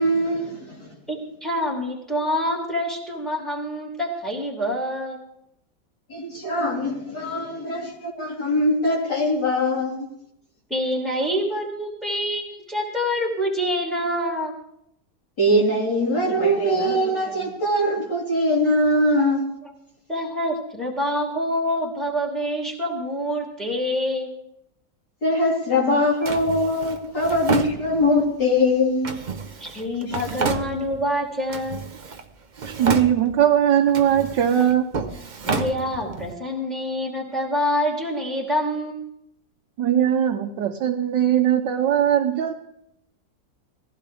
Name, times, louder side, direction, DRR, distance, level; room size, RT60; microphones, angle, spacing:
voice 1, 0.0-0.9 6.1-10.0 15.4-19.4 25.2-29.1, left 1 dB, 70° left, 4.2 m, -22 dB
voice 2, 1.1-5.2 10.7-14.5 19.6-19.7 20.1-24.3 26.2-26.3 29.6-31.8 35.4-39.0, equal, ahead, 2.8 m, -26 dB
Drawer open or close, 26.3-28.3 29.0-31.1 31.5-32.3 32.5-33.5 33.9-36.3, right 5 dB, 40° right, 0.7 m, -30 dB
voice 3, 32.7-34.9 39.8-42.5, right 10 dB, 85° right, 1.5 m, -20 dB
20.0 x 15.5 x 3.4 m
omnidirectional pair, 1.9 m